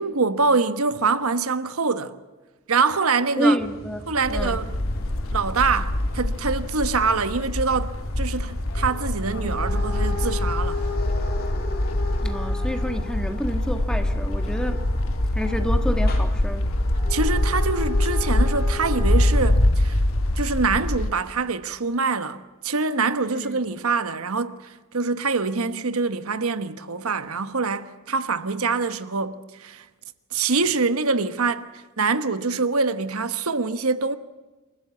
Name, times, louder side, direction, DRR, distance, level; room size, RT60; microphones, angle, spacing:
voice 1, 0.0-2.1 2.7-3.6 4.1-4.7 5.3-10.8 17.1-20.0 20.4-24.6 24.9-29.8 30.3-31.7 32.0-34.2, right 4 dB, 90° right, 1.2 m, -24 dB
voice 2, 3.4-4.6 12.2-14.9 15.3-16.8 23.3-23.6, equal, 5° left, 1.6 m, -28 dB
sound 1, 3.6-20.4, left 2 dB, 45° left, 3.4 m, -35 dB
sound 2, 4.2-21.1, left 1 dB, 70° left, 1.3 m, -24 dB
27.5 x 14.5 x 8.4 m
head